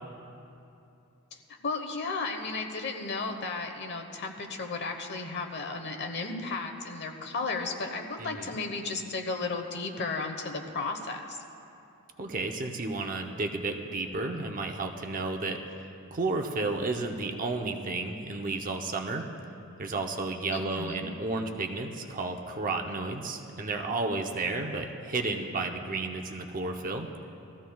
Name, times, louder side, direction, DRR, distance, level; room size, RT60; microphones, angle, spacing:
voice 1, 1.3-11.4 20.5-21.1, left 3 dB, 50° left, 5 dB, 1.1 m, -34 dB
voice 2, 8.2-8.6 12.2-15.6 16.1-19.3 19.8-27.1, right 3 dB, 40° right, 3 dB, 0.7 m, -32 dB
20.5 x 14.5 x 2.3 m, 2.7 s
head